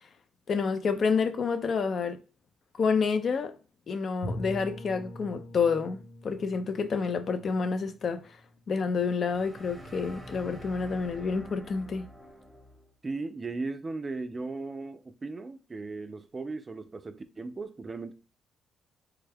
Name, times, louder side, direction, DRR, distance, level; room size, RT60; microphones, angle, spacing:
voice 1, 0.5-2.2 2.8-3.6 3.9-8.4 8.7-12.1, left 5 dB, 50° left, 0.4 m, -29 dB
Bowed string instrument, 4.2-9.0, left 1 dB, 75° left, 0.8 m, -43 dB
sound 1, 9.2-12.9, equal, 10° right, 0.8 m, -47 dB
voice 2, 13.0-18.1, right 3 dB, 30° right, 0.4 m, -37 dB
3.4 x 2.2 x 3.3 m
cardioid pair, 90°, 0 cm